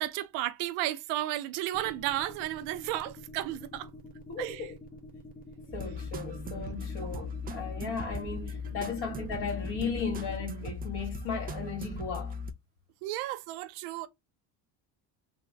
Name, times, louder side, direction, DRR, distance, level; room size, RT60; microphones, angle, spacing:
voice 1, 0.0-3.9 4.4-4.7 7.0-7.2 13.0-14.1, right 14 dB, 85° right, 0.7 m, -33 dB
Medium Text Blip, 1.7-10.5, left 2 dB, 20° left, 0.8 m, -47 dB
voice 2, 4.3-4.7 5.7-12.3, left 5 dB, 60° left, 1.9 m, -36 dB
sound 1, 5.7-12.5, left 2 dB, 20° right, 0.4 m, -38 dB
3.6 x 2.0 x 3.9 m
cardioid pair, 130°, 45 cm